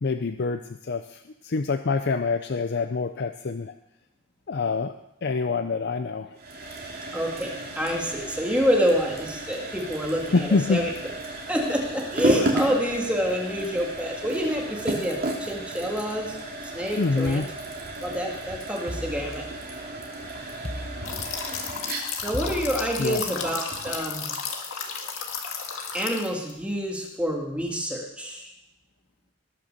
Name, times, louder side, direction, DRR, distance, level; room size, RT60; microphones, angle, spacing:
voice 1, 0.0-3.7 4.5-4.9 5.2-6.4 10.3-10.9 17.0-17.5 23.0-23.2, left 4 dB, 50° left, 9 dB, 0.5 m, -26 dB
sound 1, 6.4-24.1, right 1 dB, 45° right, 2.9 m, -33 dB
voice 2, 7.1-10.9 11.5-16.4 16.7-17.4 18.0-19.4 22.2-24.3 25.9-28.5, equal, 5° right, -1 dB, 1.9 m, -27 dB
sound 2, 18.9-20.0 20.6-21.7 22.3-23.5, left 1 dB, 25° left, 1.2 m, -37 dB
sound 3, 21.0-26.5, left 6 dB, 75° left, 1.9 m, -33 dB
19.5 x 6.7 x 6.6 m, 0.87 s
head